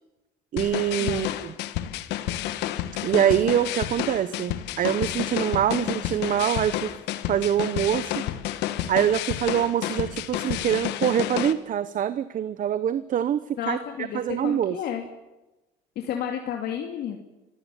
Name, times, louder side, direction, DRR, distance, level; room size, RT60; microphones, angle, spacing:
voice 1, 0.5-1.5 3.0-6.9 7.3-8.2 8.9-13.8 14.1-14.8, right 10 dB, 50° right, 14 dB, 1.0 m, -24 dB
sound 1, 0.6-11.5, left 13 dB, 90° left, 1.4 m, -30 dB
voice 2, 13.6-15.0 16.0-17.2, left 9 dB, 70° left, 3 dB, 2.5 m, -32 dB
25.5 x 16.5 x 8.5 m, 1.0 s
cardioid pair, 110°, 17 cm